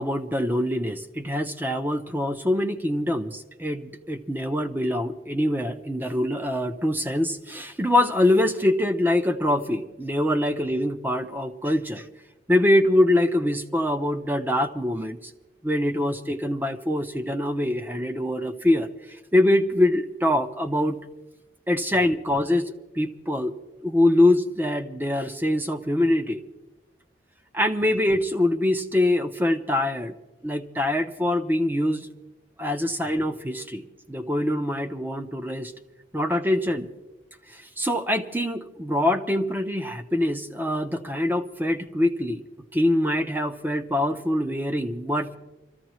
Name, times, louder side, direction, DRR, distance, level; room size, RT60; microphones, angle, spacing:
voice 1, 0.0-12.0 12.5-15.2 15.6-18.9 19.3-21.0 21.7-23.5 23.8-26.4 27.5-30.1 30.4-32.1 32.6-33.8 34.1-35.7 36.1-36.9 37.5-42.4 42.7-45.4, left 1 dB, 10° right, 8 dB, 0.7 m, -24 dB
25.5 x 14.5 x 3.1 m, 1.0 s
head